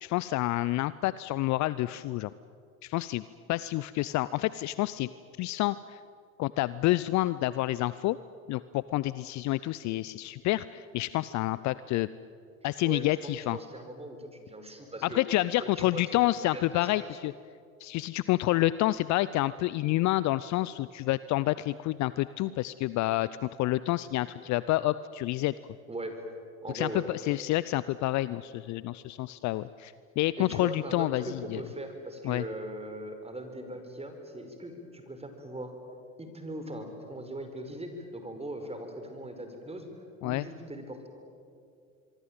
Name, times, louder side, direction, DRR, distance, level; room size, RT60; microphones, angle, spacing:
voice 1, 0.0-2.3 2.8-3.2 3.5-5.1 5.4-6.0 6.4-8.2 8.5-12.1 12.6-13.6 15.1-17.3 17.8-25.5 26.7-31.6 32.2-32.4 40.2-40.5, left 17 dB, 40° left, 17 dB, 0.6 m, -28 dB
voice 2, 12.8-15.2 15.6-17.1 25.9-26.2 26.6-27.1 30.4-35.8 36.2-41.1, right 1 dB, 15° right, 7 dB, 5.4 m, -40 dB
25.0 x 23.5 x 9.1 m, 2.4 s
hypercardioid pair, 75°, 43 cm